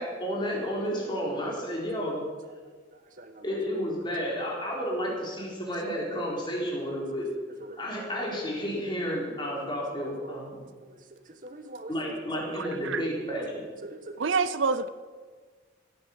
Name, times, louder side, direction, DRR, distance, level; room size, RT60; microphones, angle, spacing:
voice 1, 0.0-2.2 3.4-7.3 7.8-10.6 11.9-13.5, equal, 25° left, -3 dB, 4.1 m, -31 dB
voice 2, 3.2-3.6 4.2-4.3 6.1-6.2 7.6-7.8 10.2-10.3 11.1-12.5 12.9-13.0 13.8-14.3, right 2 dB, 40° right, 8 dB, 1.3 m, -43 dB
voice 3, 12.5-13.0 14.2-14.9, right 4 dB, 70° right, 14 dB, 0.6 m, -27 dB
16.5 x 9.2 x 7.3 m, 1.5 s
head